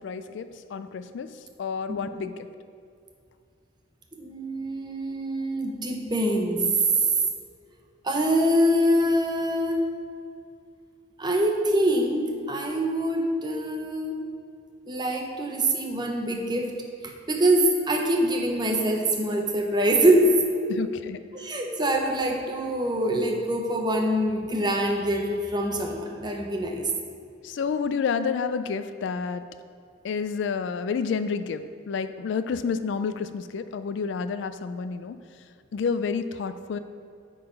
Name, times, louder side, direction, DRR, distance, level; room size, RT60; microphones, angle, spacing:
voice 1, 0.0-2.5 20.7-21.2 27.4-29.5 30.0-35.2 35.7-36.8, left 5 dB, 65° left, 11 dB, 0.3 m, -29 dB
voice 2, 4.2-6.6 8.0-9.8 11.2-14.2 14.9-16.7 17.0-20.7 21.3-26.9, right 1 dB, 20° right, 2 dB, 0.7 m, -24 dB
8.7 x 3.9 x 5.1 m, 2.4 s
head